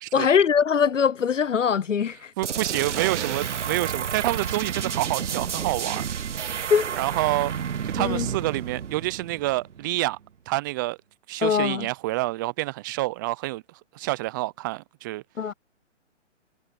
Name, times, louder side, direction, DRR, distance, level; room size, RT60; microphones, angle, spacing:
voice 1, 0.1-2.3 6.7-6.9 8.0-8.3 11.4-11.9 15.4-15.5, left 7 dB, 80° left, 0.9 m, -22 dB
voice 2, 2.4-6.0 7.0-7.5 7.9-10.2 10.5-11.0 11.3-13.6 13.9-15.2, right 19 dB, 15° right, 0.5 m, -27 dB
sound 1, 2.4-10.0, right 8 dB, 70° right, 1.2 m, -31 dB
sound 2, 2.9-7.8, right 12 dB, 50° right, 4.3 m, -40 dB
figure-of-eight pair, 130°, 37 cm